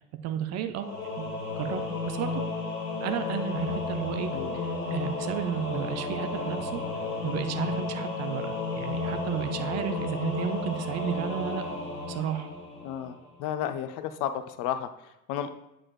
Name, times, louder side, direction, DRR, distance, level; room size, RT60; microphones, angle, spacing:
voice 1, 0.2-1.8 2.1-2.4 3.0-6.8 7.2-11.6 12.1-12.5, right 9 dB, 35° right, 9 dB, 0.6 m, -33 dB
Singing / Musical instrument, 0.8-13.3, left 3 dB, 85° left, 1.1 m, -33 dB
voice 2, 12.8-15.5, left 10 dB, 45° left, 10 dB, 0.6 m, -33 dB
8.4 x 4.9 x 2.3 m, 0.91 s
figure-of-eight pair, 70°, 44 cm